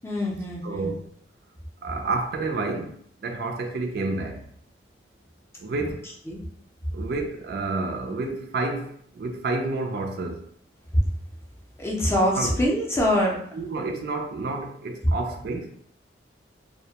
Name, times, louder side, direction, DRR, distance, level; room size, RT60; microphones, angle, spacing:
voice 1, 0.0-0.9 5.8-5.9 6.3-6.4 11.8-13.4, left 1 dB, 15° left, 0.4 m, -24 dB
voice 2, 0.6-1.1 1.8-3.0 3.2-4.4 5.6-6.1 6.9-10.4 12.4-12.6 13.5-15.9, right 3 dB, 55° right, 0.3 m, -29 dB
2.2 x 2.1 x 2.8 m
head